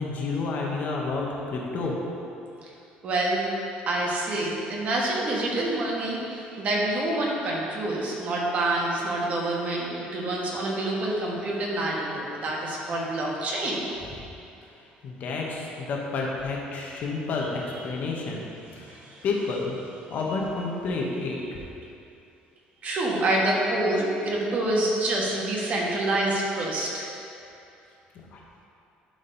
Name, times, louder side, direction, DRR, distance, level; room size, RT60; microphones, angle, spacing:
voice 1, 0.0-2.0 15.0-18.4 18.8-18.9 19.2-19.8 20.1-21.4 28.3-28.4, left 3 dB, 55° left, -2 dB, 1.4 m, -30 dB
voice 2, 3.0-3.5 3.9-13.9 17.5-17.8 18.9-19.2 20.3-20.4 22.8-27.1, right 1 dB, 45° right, -3 dB, 1.6 m, -27 dB
11.5 x 4.0 x 4.1 m, 2.7 s
cardioid pair, 110°, 3 cm